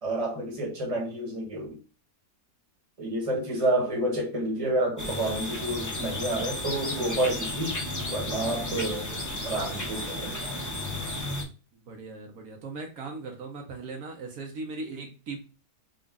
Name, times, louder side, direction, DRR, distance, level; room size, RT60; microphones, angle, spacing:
voice 1, 0.0-1.8 3.0-7.7 8.1-9.1 9.4-10.5, right 1 dB, 25° right, 1.2 m, -29 dB
sound 1, 5.0-11.4, left 1 dB, 25° left, 0.4 m, -33 dB
voice 2, 9.1-9.4 11.7-15.4, right 3 dB, 70° right, 1.2 m, -39 dB
3.9 x 2.4 x 3.6 m
omnidirectional pair, 1.6 m